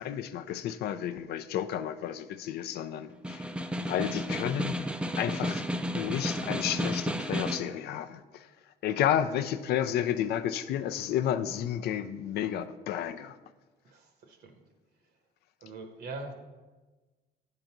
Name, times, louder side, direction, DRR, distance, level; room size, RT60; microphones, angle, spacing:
voice 1, 0.0-3.5 3.8-4.8 5.2-5.7 5.9-8.5 8.8-13.4, left 10 dB, 70° left, 11 dB, 0.5 m, -31 dB
Snare drum, 3.1-7.7, equal, 5° right, 0.4 m, -32 dB
voice 2, 13.8-14.5 15.6-16.3, right 3 dB, 70° right, 5 dB, 1.2 m, -42 dB
9.0 x 3.9 x 5.9 m, 1.2 s
cardioid pair, 110°, 17 cm